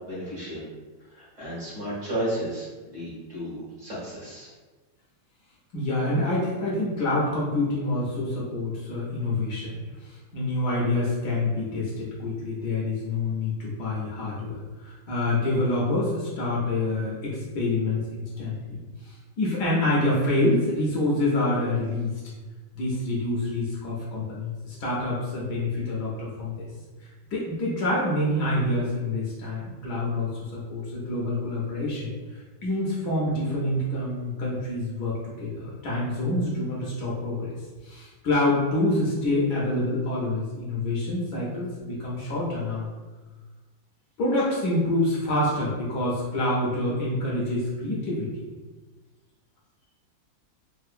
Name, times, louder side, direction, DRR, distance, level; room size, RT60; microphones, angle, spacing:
voice 1, 0.1-0.7 1.1-4.5, right 1 dB, 45° right, -9 dB, 1.3 m, -33 dB
voice 2, 5.7-14.6 14.8-22.1 22.7-26.7 27.3-32.1 32.6-37.5 37.8-42.9 44.2-48.4, left 2 dB, 65° left, -5 dB, 1.2 m, -27 dB
3.6 x 2.4 x 2.4 m, 1.3 s
omnidirectional pair, 2.0 m